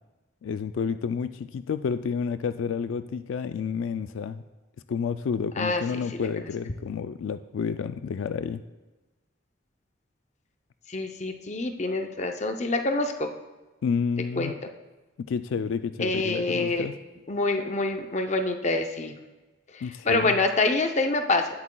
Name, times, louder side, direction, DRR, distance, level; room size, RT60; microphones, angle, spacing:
voice 1, 0.4-4.4 4.9-8.6 13.8-14.5 15.2-17.0 19.8-20.4, left 6 dB, 75° left, 11 dB, 0.3 m, -30 dB
voice 2, 10.9-13.3 14.4-14.6 16.0-16.9 17.3-19.2 19.7-21.5, left 2 dB, 35° left, 5 dB, 0.6 m, -26 dB
17.5 x 8.2 x 2.3 m, 1.2 s
head